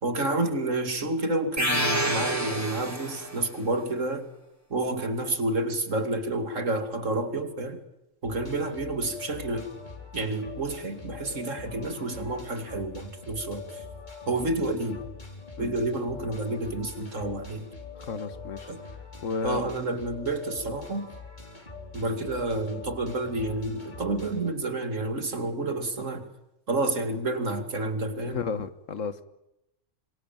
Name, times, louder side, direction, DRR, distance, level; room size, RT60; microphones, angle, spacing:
voice 1, 0.0-4.3 4.7-7.8 8.2-9.7 10.1-13.8 14.3-15.0 15.6-17.7 18.7-18.8 19.4-21.1 21.9-26.3 26.7-28.4, right 2 dB, 80° right, 7 dB, 2.9 m, -29 dB
sound 1, 1.6-3.5, right 1 dB, 10° right, 3.5 m, -28 dB
sound 2, 8.2-24.5, left 4 dB, 35° left, 4.3 m, -43 dB
voice 2, 18.1-18.7 19.2-19.6 28.2-29.2, left 5 dB, 85° left, 12 dB, 1.8 m, -32 dB
26.0 x 23.0 x 9.1 m, 0.86 s
omnidirectional pair, 1.3 m